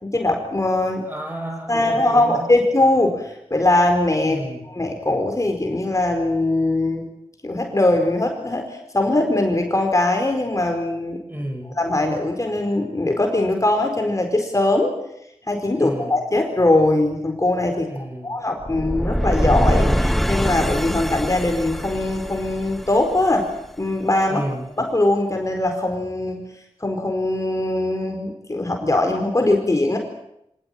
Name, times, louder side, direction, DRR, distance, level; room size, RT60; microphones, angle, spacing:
voice 1, 0.0-1.0 1.7-4.4 4.7-7.1 7.4-11.2 11.8-14.9 15.5-17.9 18.2-23.5 23.8-24.4 24.8-26.4 26.8-30.0, left 2 dB, 30° left, 3 dB, 4.6 m, -21 dB
voice 2, 1.1-2.6 4.2-4.7 11.3-11.8 15.8-16.2 17.9-18.3 24.3-24.7, right 1 dB, 20° right, 3 dB, 7.3 m, -31 dB
sound 1, 18.6-23.7, equal, ahead, 1.2 m, -23 dB
25.5 x 19.0 x 9.2 m, 0.80 s
wide cardioid pair, 75°, 11 cm